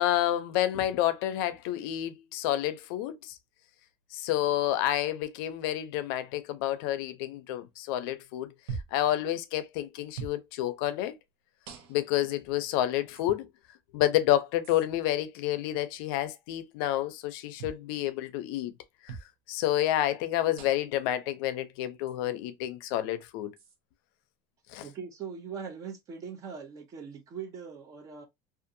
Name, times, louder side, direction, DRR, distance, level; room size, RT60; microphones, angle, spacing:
voice 1, 0.0-3.4 4.1-8.5 8.9-11.1 11.9-13.5 13.9-18.7 19.0-19.2 19.5-23.5 24.7-24.8, left 13 dB, 75° left, 0.4 m, -29 dB
sound 1, 8.7-9.1 10.2-10.4 11.7-12.2 13.2-13.3 14.6-14.8 17.6-17.9 19.1-19.3 20.6-21.0 22.1-22.2 23.6-23.8, right 6 dB, 80° right, 0.7 m, -41 dB
voice 2, 24.8-28.3, right 6 dB, 25° right, 0.5 m, -41 dB
2.6 x 2.4 x 2.5 m
cardioid pair, 170°, 13 cm